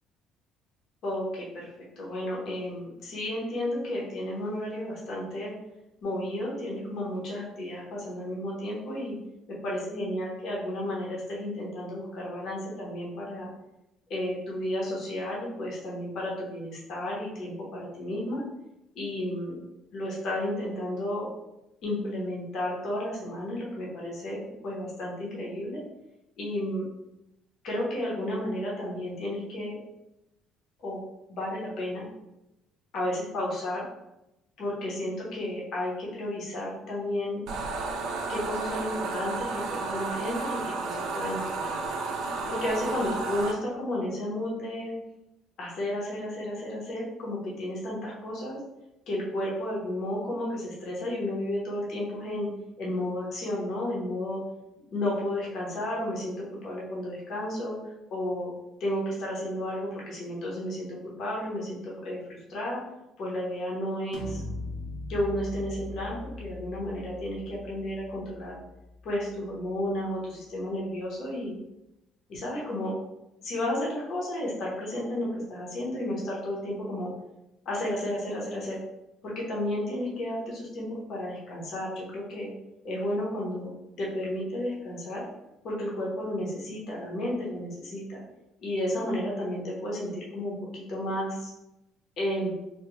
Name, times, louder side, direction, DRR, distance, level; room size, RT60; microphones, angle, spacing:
voice 1, 1.0-1.7 2.0-5.5 6.0-9.2 9.6-13.5 14.1-18.4 18.9-19.5 19.9-21.3 21.8-25.8 26.4-26.8 27.6-29.8 30.8-31.0 31.3-32.1 32.9-33.8 34.6-37.4 38.3-41.8 42.5-44.9 45.6-48.6 49.1-52.5 52.8-54.4 54.9-57.8 58.1-58.5 58.8-60.9 61.2-62.8 63.2-64.4 65.1-68.6 69.0-71.5 72.3-72.9 73.4-77.1 77.6-78.8 79.2-82.5 82.8-85.3 85.6-88.2 88.6-91.5 92.2-92.5, left 1 dB, 50° left, -4 dB, 0.9 m, -32 dB
sound 1, 37.5-43.5, right 3 dB, 60° right, 0.4 m, -32 dB
sound 2, 64.1-69.8, left 2 dB, 85° left, 0.5 m, -40 dB
3.4 x 2.2 x 3.0 m, 0.93 s
cardioid pair, 165°, 0 cm